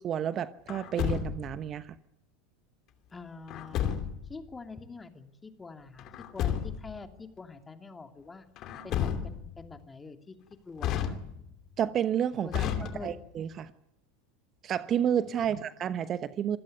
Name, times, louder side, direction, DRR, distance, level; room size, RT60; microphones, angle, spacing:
voice 1, 0.0-2.0 11.8-12.6 13.0-13.7 14.6-16.6, right 9 dB, 40° right, 14 dB, 1.0 m, -30 dB
Truck, 0.7-1.6 3.5-4.3 6.0-7.0 8.6-9.6 10.8-11.6 12.5-13.4, left 9 dB, 45° left, 2.7 m, -32 dB
voice 2, 3.1-4.0 4.3-8.5 8.8-10.4 10.6-11.2 12.4-13.1 15.4-15.6, left 4 dB, 15° left, 6 dB, 2.7 m, -45 dB
26.5 x 16.0 x 9.5 m, 0.80 s
hypercardioid pair, 80°, 0 cm